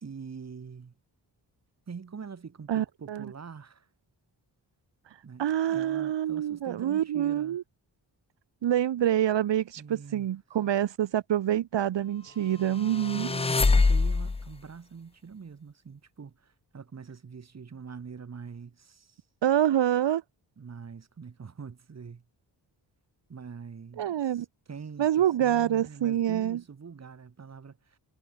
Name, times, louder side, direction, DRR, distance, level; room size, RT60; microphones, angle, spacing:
voice 1, 0.0-0.9 1.9-3.9 5.2-7.6 9.8-10.3 13.1-19.2 20.6-22.2 23.3-28.0, right 6 dB, 40° right, 2.1 m, -44 dB
voice 2, 2.7-3.2 5.4-7.6 8.6-13.3 19.4-20.2 24.0-24.5 25.0-26.6, right 11 dB, 80° right, 1.1 m, -26 dB
sound 1, 12.8-14.5, left 3 dB, 15° left, 0.4 m, -24 dB
wide cardioid pair, 160°, 43 cm